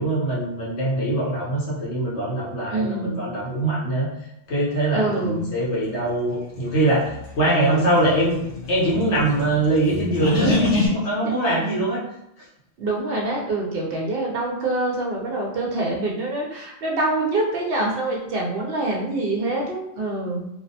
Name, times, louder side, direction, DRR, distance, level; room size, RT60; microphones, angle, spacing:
voice 1, 0.0-4.1 4.5-8.4 8.7-12.0, right 1 dB, 75° left, -6 dB, 1.2 m, -23 dB
voice 2, 2.7-3.2 4.9-5.5 10.4-11.0 11.2-11.4 12.8-20.5, right 2 dB, 65° right, -1 dB, 0.7 m, -25 dB
sound 1, 6.8-10.9, left 3 dB, 60° left, 0.7 m, -27 dB
2.6 x 2.0 x 2.7 m, 0.80 s
omnidirectional pair, 1.2 m